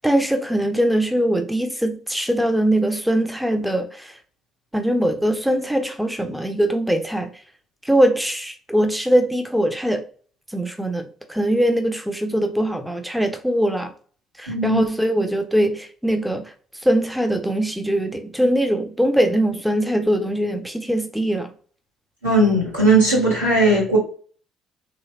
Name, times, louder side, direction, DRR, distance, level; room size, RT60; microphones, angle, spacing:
voice 1, 0.0-4.1 4.7-7.3 7.8-10.0 10.5-13.9 14.4-16.4 16.8-21.5, right 1 dB, 5° right, 0.5 m, -21 dB
voice 2, 14.5-14.8 22.2-24.0, right 2 dB, 85° right, 1.3 m, -17 dB
3.1 x 2.8 x 2.7 m
figure-of-eight pair, 50°, 0 cm